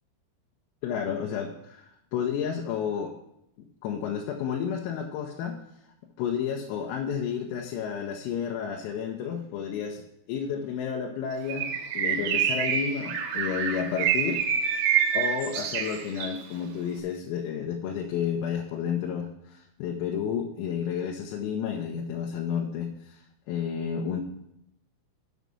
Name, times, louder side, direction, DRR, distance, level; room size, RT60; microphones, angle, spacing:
voice 1, 0.8-3.1 3.8-5.6 6.2-10.0 10.3-14.4 15.1-23.2 23.5-24.2, left 7 dB, 90° left, 1 dB, 3.6 m, -31 dB
Bird, 11.5-16.4, right 8 dB, 75° right, 3.3 m, -27 dB
8.1 x 6.2 x 6.7 m, 0.80 s
omnidirectional pair, 5.9 m